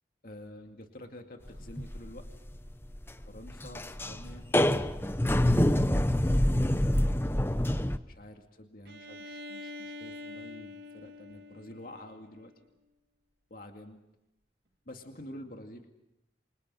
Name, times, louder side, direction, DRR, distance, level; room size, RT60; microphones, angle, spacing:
voice 1, 0.2-2.2 3.2-4.5 8.0-12.5 13.5-14.0 14.9-15.9, left 1 dB, 50° left, 4 dB, 2.3 m, -48 dB
sound 1, 1.5-8.0, left 1 dB, 10° left, 0.8 m, -26 dB
Bowed string instrument, 8.9-12.6, left 2 dB, 60° right, 2.0 m, -45 dB
28.5 x 26.5 x 5.6 m, 0.87 s
head